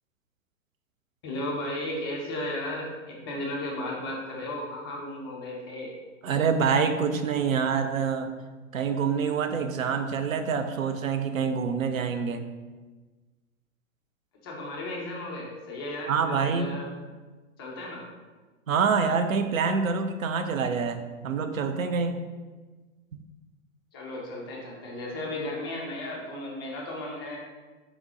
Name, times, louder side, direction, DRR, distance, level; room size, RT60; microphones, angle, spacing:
voice 1, 1.2-5.9 14.4-16.9 17.6-18.0 23.9-27.4, left 1 dB, 20° left, -2 dB, 0.4 m, -35 dB
voice 2, 6.2-8.3 8.7-12.4 16.1-16.8 18.7-22.2, right 5 dB, 75° right, 7 dB, 0.5 m, -26 dB
4.2 x 3.6 x 2.7 m, 1.3 s
figure-of-eight pair, 110°, 40 cm